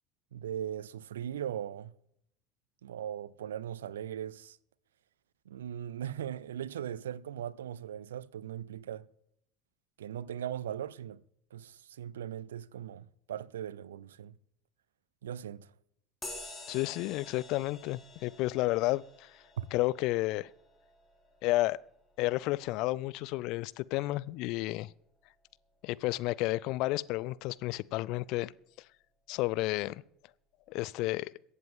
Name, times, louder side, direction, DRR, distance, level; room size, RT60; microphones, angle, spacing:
voice 1, 0.3-1.9 2.8-4.6 5.5-9.1 10.0-11.2 11.5-14.4 15.2-15.7 19.6-19.7, right 10 dB, 75° right, 0.4 m, -39 dB
sound 1, 16.2-24.1, left 2 dB, 15° left, 3.5 m, -50 dB
voice 2, 16.7-19.3 19.7-20.5 21.4-21.8 22.2-24.9 25.8-28.5 29.3-30.0 30.7-31.3, left 19 dB, 55° left, 0.4 m, -31 dB
22.5 x 8.1 x 3.7 m
figure-of-eight pair, 65°, 0 cm